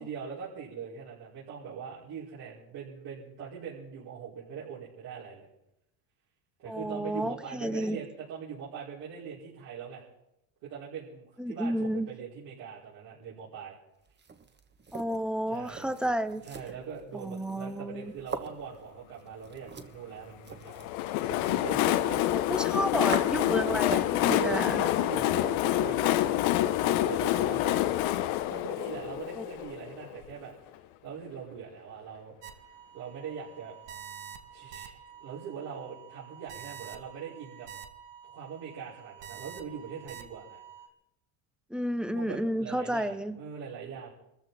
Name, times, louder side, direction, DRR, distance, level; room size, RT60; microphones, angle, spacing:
voice 1, 0.0-5.5 6.6-10.0 10.6-13.8 15.5-15.9 16.4-20.9 21.2-22.2 24.2-27.8 28.5-30.5 31.0-32.3 32.9-33.8 34.5-37.7 38.3-40.6 42.1-44.1, right 7 dB, 60° right, -9 dB, 5.4 m, -42 dB
voice 2, 6.7-8.0 11.4-12.1 14.9-16.4 17.1-18.1 22.2-24.9 29.4-29.5 41.7-43.4, equal, ahead, 13 dB, 0.8 m, -31 dB
sound 1, 14.1-24.3, right 5 dB, 25° right, 1.4 m, -43 dB
Train, 20.7-30.3, left 14 dB, 75° left, 1.1 m, -27 dB
sound 2, 32.4-40.9, right 8 dB, 75° right, 1.8 m, -48 dB
23.0 x 14.0 x 4.3 m, 0.85 s
supercardioid pair, 105°, 43 cm